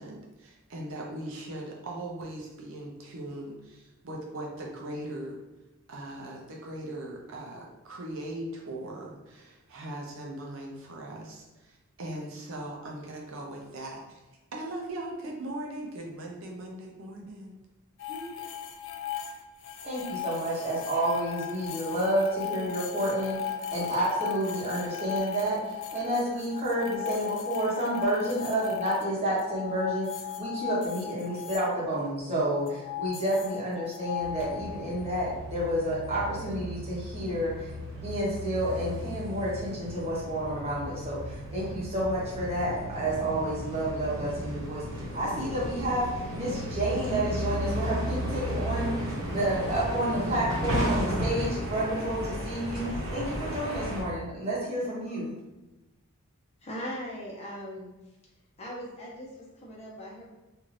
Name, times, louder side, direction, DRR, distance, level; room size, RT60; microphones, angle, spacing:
voice 1, 0.0-5.4 5.9-14.2 14.5-17.6 18.1-18.3, right 1 dB, 60° right, -1 dB, 0.5 m, -39 dB
sound 1, 18.0-31.7 32.5-35.1, left 9 dB, 55° left, 0.3 m, -37 dB
voice 2, 19.8-37.7 38.0-46.1 46.3-55.4, right 1 dB, 30° right, -7 dB, 0.9 m, -30 dB
sound 2, 34.2-54.0, equal, 85° right, 1.0 m, -34 dB
voice 3, 56.6-57.9 58.6-60.2, equal, 30° left, -5 dB, 0.6 m, -39 dB
2.7 x 2.4 x 3.1 m, 1.1 s
head